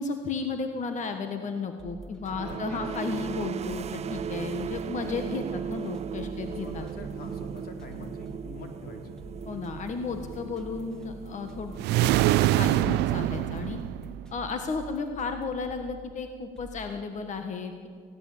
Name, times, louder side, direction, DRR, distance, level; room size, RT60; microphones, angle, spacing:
voice 1, 0.0-6.8 9.5-11.7 12.0-13.8 14.3-17.9, left 4 dB, 45° left, 7 dB, 1.5 m, -34 dB
sound 1, 1.8-17.0, right 2 dB, 5° left, 2.4 m, -47 dB
sound 2, 2.2-13.8, right 8 dB, 40° right, 0.6 m, -37 dB
voice 2, 2.3-2.8 6.6-9.1, left 2 dB, 65° left, 3 dB, 3.7 m, -43 dB
sound 3, 11.8-14.4, right 16 dB, 85° right, 0.5 m, -24 dB
19.5 x 16.0 x 8.5 m, 2.1 s
cardioid pair, 110°, 17 cm